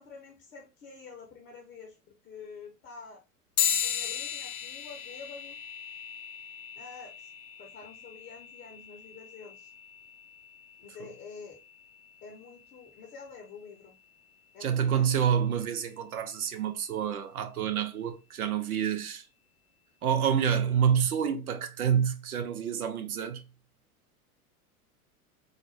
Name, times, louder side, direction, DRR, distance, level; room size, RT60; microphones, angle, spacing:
voice 1, 0.0-3.2 3.8-5.6 6.7-7.3 7.6-9.7 10.8-11.6 12.2-13.9 14.5-15.1, left 5 dB, 20° left, 0.7 m, -48 dB
sound 1, 3.6-13.4, left 8 dB, 70° left, 0.6 m, -37 dB
voice 2, 14.6-19.2 20.0-23.4, right 8 dB, 70° right, 0.7 m, -28 dB
3.8 x 2.1 x 3.2 m
figure-of-eight pair, 90°, 45 cm